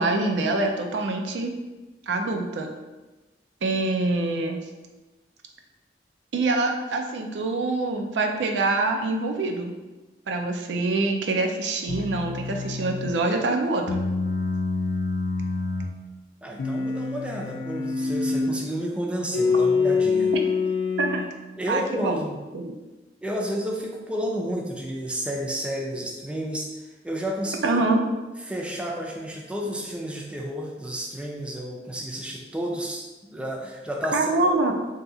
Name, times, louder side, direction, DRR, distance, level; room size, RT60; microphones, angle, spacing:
voice 1, 0.0-1.5 2.1-2.7 3.6-4.6 6.3-9.7 10.3-13.8 21.0-21.2 21.7-22.2 22.5-22.7 27.6-28.0 34.1-34.7, right 2 dB, 90° right, 3 dB, 0.4 m, -25 dB
sound 1, 11.9-13.2 13.9-16.0 16.6-18.6 19.3-21.3, left 4 dB, 60° left, 0.4 m, -26 dB
voice 2, 16.4-20.3 21.6-22.4 23.2-27.8 28.4-34.5, equal, 5° right, -1 dB, 0.3 m, -31 dB
2.7 x 2.3 x 3.6 m, 1.1 s
head